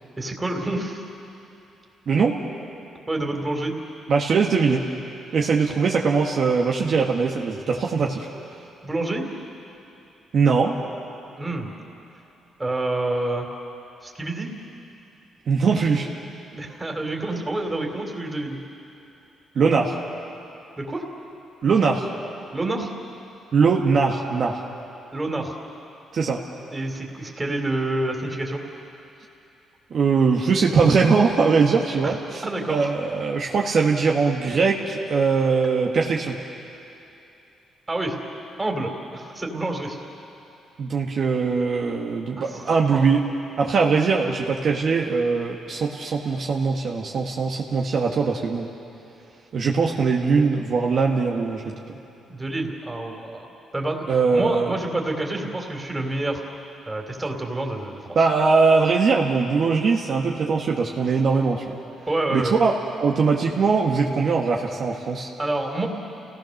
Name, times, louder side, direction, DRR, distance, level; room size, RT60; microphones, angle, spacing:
voice 1, 0.2-1.0 3.1-3.8 8.8-9.2 11.4-11.7 12.6-13.5 14.0-14.5 16.5-18.6 20.8-21.0 22.5-22.9 25.1-25.5 26.7-28.6 32.4-32.9 37.9-38.2 38.6-40.0 42.4-43.1 52.3-54.1 54.3-56.4 56.9-58.2 62.1-62.5 65.4-65.9, right 2 dB, 15° right, 1 dB, 3.4 m, -28 dB
voice 2, 2.1-2.4 4.1-4.8 5.3-8.3 10.3-10.7 15.5-16.1 19.5-20.0 21.6-22.1 23.5-24.6 26.1-26.4 29.9-36.4 40.8-43.2 43.6-48.7 49.5-52.0 54.1-54.7 58.1-61.8 62.3-62.7 63.0-65.3, right 5 dB, 55° right, -1 dB, 1.7 m, -21 dB
29.0 x 18.0 x 6.6 m, 2.9 s
cardioid pair, 90°, 0 cm